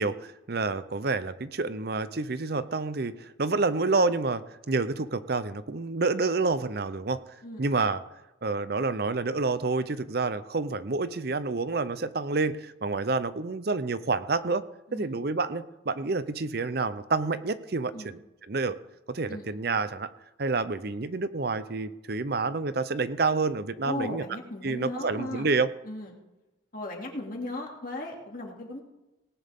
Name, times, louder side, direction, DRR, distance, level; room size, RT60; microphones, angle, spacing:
voice 1, 0.0-7.2 7.6-8.0 8.4-14.6 14.9-18.2 18.5-18.8 19.1-20.1 20.4-24.2 24.6-25.7, right 3 dB, 55° right, 14 dB, 0.6 m, -28 dB
voice 2, 23.8-25.5 25.8-26.1 26.7-28.8, left 2 dB, 45° left, 0 dB, 2.6 m, -37 dB
18.0 x 10.5 x 3.6 m, 1.0 s
head